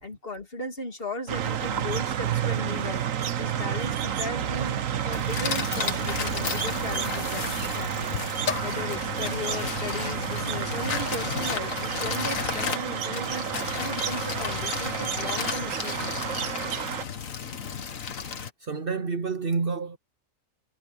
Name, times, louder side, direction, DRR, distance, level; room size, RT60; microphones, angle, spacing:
voice 1, 0.0-4.8 5.0-16.2, left 2 dB, 45° left, 3.0 m, -37 dB
sound 1, 1.3-17.0, right 9 dB, 70° right, 1.3 m, -30 dB
sound 2, 5.1-18.5, left 6 dB, 75° left, 1.8 m, -33 dB
voice 2, 18.6-20.0, right 4 dB, 50° right, 0.9 m, -29 dB
omnidirectional pair, 1.4 m